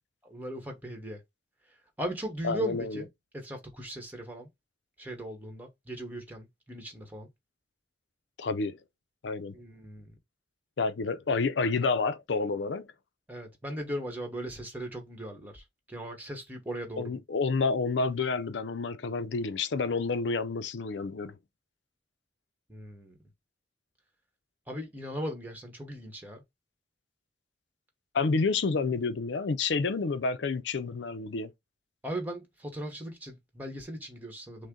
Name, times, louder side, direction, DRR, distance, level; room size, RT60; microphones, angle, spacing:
voice 1, 0.2-1.2 2.0-3.1 3.3-4.5 5.0-7.3 9.5-10.1 13.3-17.2 22.7-23.2 24.7-26.4 32.0-34.7, right 1 dB, 10° right, 1.1 m, -38 dB
voice 2, 2.4-3.0 8.4-8.8 9.2-9.5 10.8-12.9 17.0-21.4 28.1-31.5, left 4 dB, 75° left, 0.5 m, -29 dB
6.4 x 2.1 x 3.7 m
head